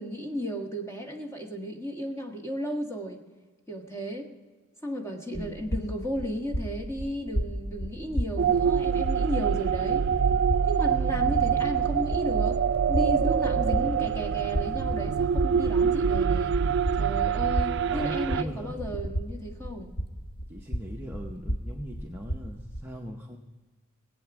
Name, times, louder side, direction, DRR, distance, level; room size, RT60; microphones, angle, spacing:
voice 1, 0.0-3.2 3.7-4.3 4.8-10.0 10.7-12.6 12.9-16.5 17.0-19.9, equal, 15° left, 1 dB, 1.5 m, -34 dB
sound 1, 5.3-22.8, equal, 90° left, 1.1 m, -34 dB
sound 2, 8.4-18.4, right 7 dB, 55° right, 0.3 m, -25 dB
voice 2, 17.9-18.8 20.5-23.4, equal, 10° right, -1 dB, 0.7 m, -39 dB
19.5 x 8.2 x 6.0 m, 1.3 s
head